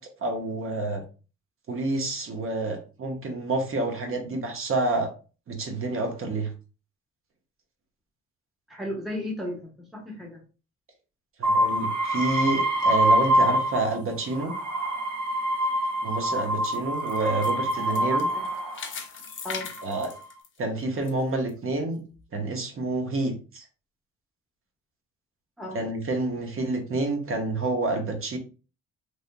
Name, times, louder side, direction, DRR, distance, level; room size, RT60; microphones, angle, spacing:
voice 1, 0.2-1.0 1.7-5.1 5.5-6.5 11.4-14.5 16.0-18.3 19.8-20.1 20.6-22.0 22.3-23.7 25.7-28.4, right 2 dB, 45° right, 4 dB, 1.0 m, -28 dB
voice 2, 8.7-10.4 17.7-18.5 19.4-19.7 25.6-25.8, left 1 dB, ahead, -2 dB, 0.8 m, -35 dB
sound 1, 11.4-14.0 14.3-18.9 19.6-20.2, right 1 dB, 70° right, 0.9 m, -25 dB
sound 2, 16.1-21.1 21.5-21.6 22.2-22.3, left 6 dB, 40° left, 0.7 m, -40 dB
3.3 x 2.8 x 2.2 m, 0.34 s
cardioid pair, 90°, 30 cm